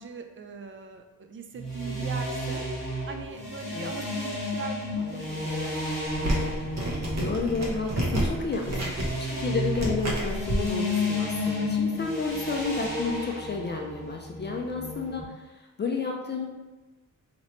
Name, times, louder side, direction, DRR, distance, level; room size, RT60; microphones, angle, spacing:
voice 1, 0.0-2.7 3.1-5.8 8.0-8.3 8.5-8.7, right 5 dB, 40° right, 6 dB, 0.4 m, -40 dB
sound 1, 1.6-15.2, left 2 dB, 10° right, 1.5 m, -32 dB
sound 2, 6.1-10.7, right 1 dB, 60° right, 1.0 m, -30 dB
voice 2, 7.2-8.8 9.2-16.5, left 4 dB, 35° left, 1 dB, 0.4 m, -31 dB
3.0 x 2.9 x 4.3 m, 1.1 s
wide cardioid pair, 125°, 30 cm